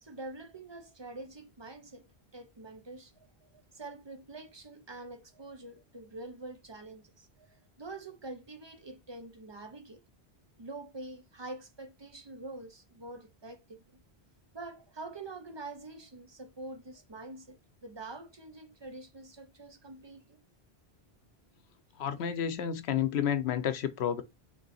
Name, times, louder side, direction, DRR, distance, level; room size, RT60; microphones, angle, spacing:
voice 1, 0.0-2.1 2.3-10.0 10.6-14.0 14.5-20.4, right 2 dB, 35° right, 0.4 m, -46 dB
voice 2, 22.0-24.2, left 9 dB, 85° left, 0.9 m, -30 dB
3.7 x 2.6 x 4.0 m
omnidirectional pair, 1.1 m